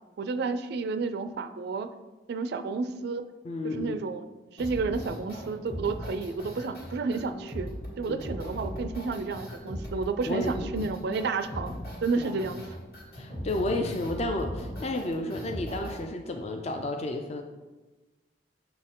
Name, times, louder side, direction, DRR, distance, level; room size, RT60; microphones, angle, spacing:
voice 1, 0.2-1.9 2.3-3.2 3.6-4.3 4.5-7.7 8.0-11.7 12.0-12.6, right 4 dB, 60° right, 10 dB, 0.3 m, -31 dB
voice 2, 3.4-4.0 8.1-8.2 10.3-10.9 12.2-12.4 13.1-17.4, left 2 dB, 35° left, 4 dB, 0.4 m, -32 dB
sound 1, 4.6-16.0, equal, 60° left, 1.9 m, -38 dB
sound 2, 6.8-14.2, right 2 dB, 15° left, 0.8 m, -51 dB
6.8 x 4.3 x 3.7 m, 1.2 s
head